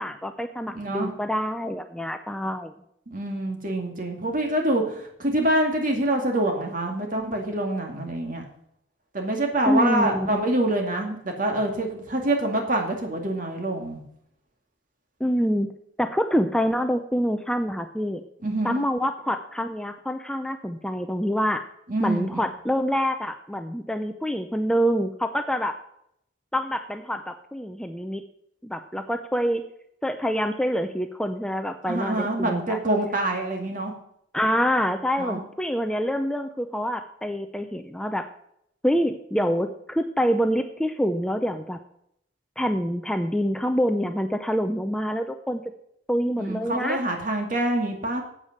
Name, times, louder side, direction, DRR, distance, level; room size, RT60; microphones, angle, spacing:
voice 1, 0.0-2.7 9.7-10.4 15.2-15.7 16.0-18.2 18.6-21.6 22.0-25.7 26.5-28.2 28.6-29.6 30.0-32.8 34.3-38.2 38.8-41.8 42.6-45.6 46.1-47.0, equal, 5° left, 7 dB, 0.5 m, -26 dB
voice 2, 0.8-1.1 3.1-8.4 9.1-14.0 18.4-18.8 21.9-22.4 31.9-33.9 35.2-35.4 46.4-48.2, right 1 dB, 45° right, 2 dB, 2.1 m, -26 dB
8.8 x 8.2 x 6.5 m, 0.73 s
head